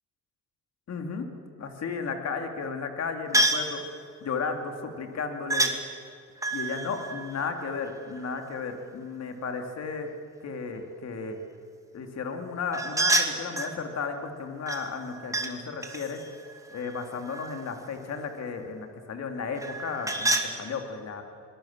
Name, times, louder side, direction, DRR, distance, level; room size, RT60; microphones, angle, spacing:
voice 1, 0.9-1.3 1.6-3.8 4.2-5.7 6.5-10.1 10.4-11.4 11.9-16.2 16.7-21.2, left 5 dB, 60° left, 5 dB, 3.1 m, -34 dB
sound 1, 3.3-3.7 5.5-5.8 6.4-8.2 12.7-13.8 14.7-15.5 15.8-17.7 19.6-20.5, right 1 dB, 10° right, 2.5 m, -28 dB
26.0 x 20.5 x 7.6 m, 2.4 s
cardioid pair, 90°, 30 cm